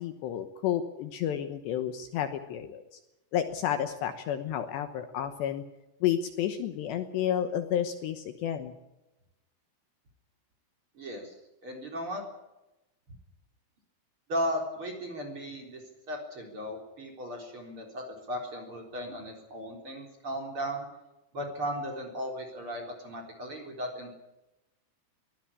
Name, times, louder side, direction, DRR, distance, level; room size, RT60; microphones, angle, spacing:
voice 1, 0.0-3.0 3.3-5.6 6.0-8.7, left 10 dB, 70° left, 8 dB, 3.0 m, -31 dB
voice 2, 10.9-11.4 11.6-12.3 14.3-15.8 16.1-20.8 21.3-24.2, equal, 30° right, 2 dB, 4.1 m, -36 dB
22.5 x 16.0 x 8.5 m, 0.98 s
omnidirectional pair, 5.7 m